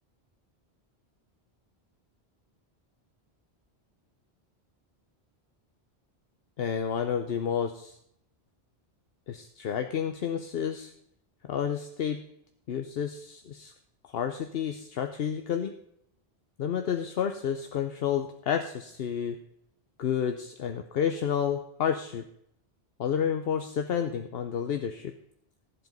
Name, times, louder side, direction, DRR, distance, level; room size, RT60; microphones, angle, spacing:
voice 1, 6.6-8.0 9.3-10.9 11.5-12.2 12.7-13.7 14.0-15.7 16.6-19.4 20.0-22.2 23.0-25.1, left 8 dB, 70° left, 7 dB, 0.9 m, -30 dB
13.5 x 7.8 x 5.3 m, 0.72 s
omnidirectional pair, 1.1 m